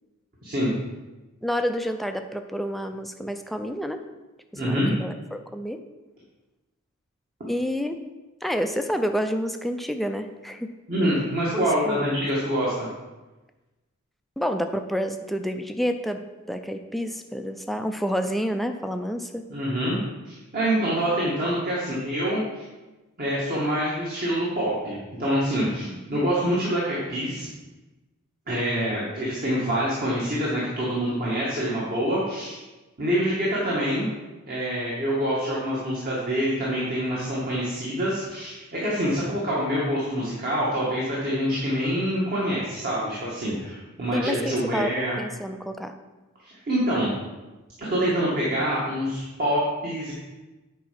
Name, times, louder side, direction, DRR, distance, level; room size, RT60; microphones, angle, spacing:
voice 1, 0.4-0.7 4.5-4.9 10.9-12.9 19.5-20.0 20.3-22.6 23.2-27.5 28.5-32.6 33.0-34.1 34.5-45.2 46.7-47.1 47.8-50.1, equal, 45° right, -7 dB, 1.9 m, -26 dB
voice 2, 1.4-4.0 4.5-5.8 7.5-8.0 8.4-10.7 11.5-12.0 14.4-19.4 25.8-26.0 44.1-44.9 45.2-45.9, equal, ahead, 6 dB, 0.5 m, -29 dB
8.7 x 4.7 x 5.8 m, 1.1 s
head